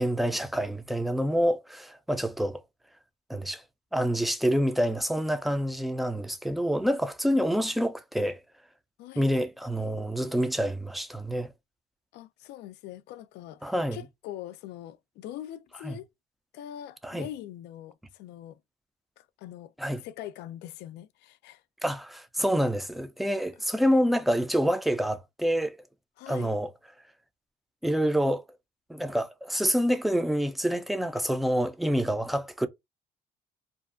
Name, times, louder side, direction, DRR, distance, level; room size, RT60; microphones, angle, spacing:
voice 1, 0.0-2.6 3.3-3.6 3.9-8.4 9.2-11.5 13.6-14.0 15.8-16.0 17.0-17.3 19.8-20.0 21.8-25.8 26.3-26.7 27.8-28.4 28.9-32.7, equal, ahead, 0.4 m, -27 dB
voice 2, 9.0-9.3 9.8-9.9 12.1-16.1 16.5-18.6 19.2-21.6 26.2-26.5, left 12 dB, 80° left, 0.4 m, -43 dB
2.5 x 2.3 x 2.4 m
cardioid pair, 110°, 17 cm